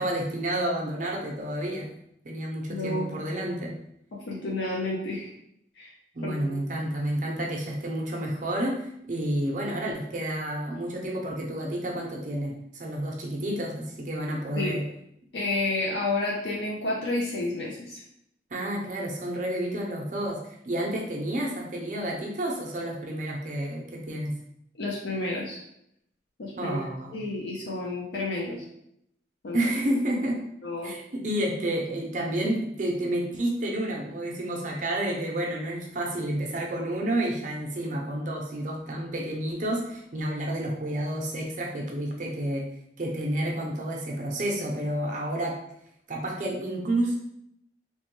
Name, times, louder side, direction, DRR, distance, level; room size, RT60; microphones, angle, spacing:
voice 1, 0.0-1.9 2.2-3.7 6.1-14.8 18.5-24.3 26.6-27.2 29.5-30.4 30.8-42.7 43.0-45.6 46.1-47.1, right 1 dB, 45° right, -1 dB, 0.5 m, -30 dB
voice 2, 2.7-3.1 4.3-5.3 5.8-5.9 6.2-6.4 14.6-14.8 15.3-18.0 24.7-25.6 26.4-26.8 27.1-28.6 29.4-29.7 30.6-30.9, left 2 dB, 80° left, -4 dB, 0.5 m, -30 dB
3.1 x 2.2 x 3.0 m, 0.75 s
head